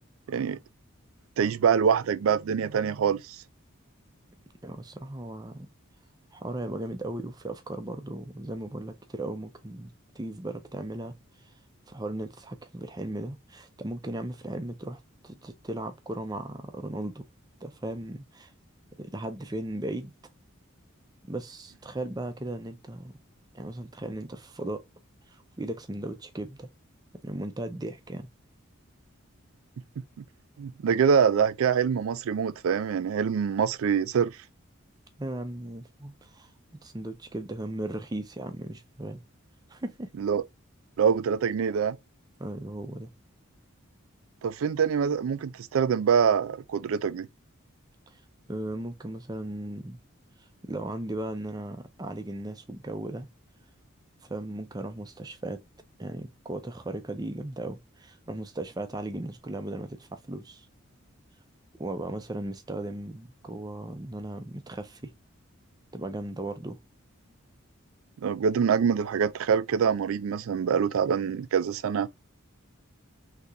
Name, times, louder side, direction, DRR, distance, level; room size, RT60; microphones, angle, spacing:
voice 1, 0.3-0.6 1.4-3.4 30.6-34.4 40.2-40.4 41.0-42.0 44.4-47.3 68.2-72.1, right 7 dB, 75° right, 0.3 m, -25 dB
voice 2, 4.6-5.7 6.3-11.5 11.9-17.3 17.6-18.5 19.0-20.1 21.2-23.1 23.5-24.8 25.3-26.7 27.2-28.3 35.2-36.5 36.8-39.2 39.7-40.1 42.4-43.1 48.1-48.2 48.5-50.0 50.4-53.3 54.2-55.6 56.0-60.7 61.7-65.1 65.9-66.8, right 1 dB, 20° right, 0.5 m, -37 dB
3.6 x 2.9 x 2.5 m
head